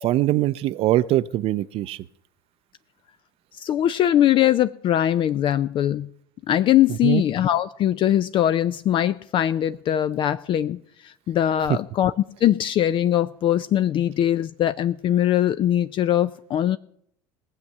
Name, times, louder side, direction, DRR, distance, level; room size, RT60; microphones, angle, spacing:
voice 1, 0.0-2.0 7.0-7.2, right 15 dB, 55° right, 15 dB, 0.5 m, -22 dB
voice 2, 3.6-6.1 6.5-12.1 12.4-16.8, left 11 dB, 45° left, 13 dB, 0.4 m, -21 dB
18.0 x 7.3 x 6.6 m, 0.70 s
hypercardioid pair, 75°, 12 cm